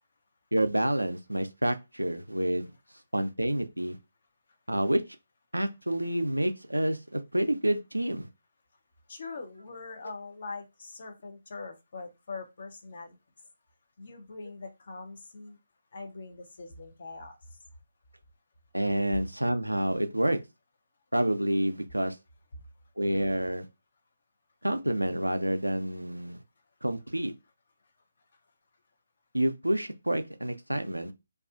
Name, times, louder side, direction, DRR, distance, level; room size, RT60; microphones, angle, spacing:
voice 1, 0.5-2.7 3.1-4.0 4.7-5.0 5.5-8.3 18.7-20.4 21.1-22.2 23.0-23.7 24.6-26.4 26.8-27.3 29.3-31.1, right 1 dB, 85° right, 0.4 m, -28 dB
voice 2, 9.1-13.2 14.0-15.6 15.9-17.4, left 3 dB, 45° left, 0.6 m, -42 dB
2.4 x 2.3 x 2.4 m
figure-of-eight pair, 145°, 0 cm